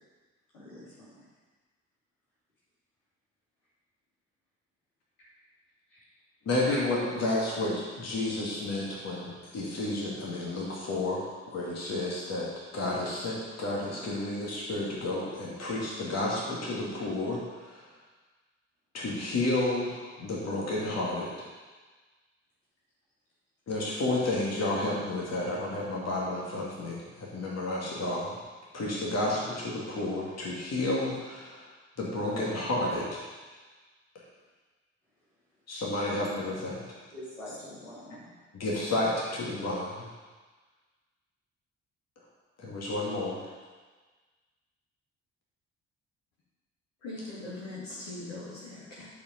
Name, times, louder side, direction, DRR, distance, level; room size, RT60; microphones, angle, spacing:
voice 1, 0.5-1.2 5.2-5.3 5.9-6.0 6.7-6.8 37.1-38.4, left 1 dB, 80° left, 2.9 m, -44 dB
voice 2, 6.4-17.9 18.9-21.3 23.7-28.4 28.7-31.7 32.0-33.3 35.7-36.8 38.5-40.1 42.6-43.5, left 2 dB, 45° left, 2.3 m, -31 dB
voice 3, 47.0-49.1, left 2 dB, 65° left, 2.3 m, -40 dB
10.0 x 5.0 x 5.2 m
figure-of-eight pair, 40°, 37 cm